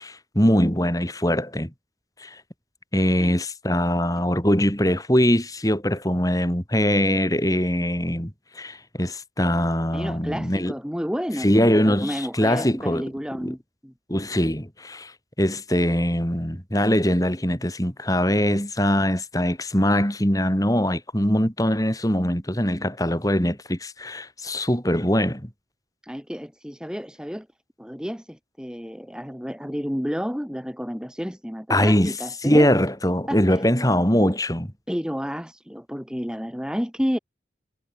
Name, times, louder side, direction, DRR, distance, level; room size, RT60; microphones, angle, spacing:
voice 1, 0.0-1.7 2.2-2.4 2.9-10.7 11.4-13.1 13.4-13.5 14.1-15.1 15.4-25.5 31.7-32.1 32.4-34.7, equal, 20° left, 6.2 m, -22 dB
voice 2, 9.9-13.9 26.0-27.5 27.8-32.7 33.3-33.6 34.9-37.2, equal, 5° right, 4.6 m, -31 dB
head